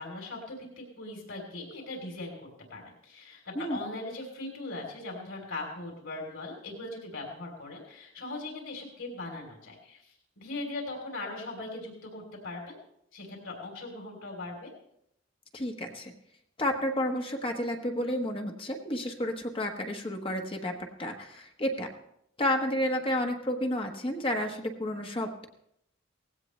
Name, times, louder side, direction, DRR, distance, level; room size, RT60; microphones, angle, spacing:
voice 1, 0.0-2.4 2.7-12.8 13.1-14.7, left 2 dB, 90° left, 1 dB, 3.3 m, -40 dB
voice 2, 15.5-16.1 16.6-21.9 22.4-25.5, left 1 dB, 25° left, 3 dB, 1.2 m, -31 dB
18.0 x 16.0 x 3.2 m, 0.76 s
head